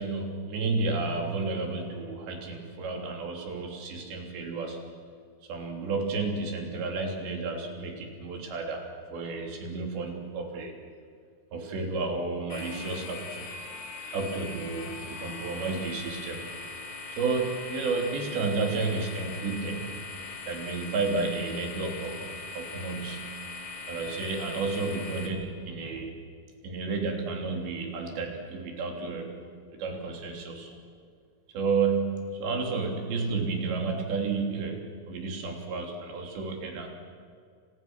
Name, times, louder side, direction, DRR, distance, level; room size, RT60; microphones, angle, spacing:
voice 1, 0.0-4.8 5.5-8.9 9.1-10.8 11.5-13.4 14.1-16.5 17.1-19.9 20.5-23.4 23.9-26.1 26.6-29.3 29.7-30.8 31.5-36.9, right 4 dB, 90° right, 2 dB, 5.6 m, -31 dB
sound 1, 12.5-25.3, left 3 dB, 50° left, 3.2 m, -40 dB
30.0 x 28.5 x 6.3 m, 2.1 s
omnidirectional pair, 4.9 m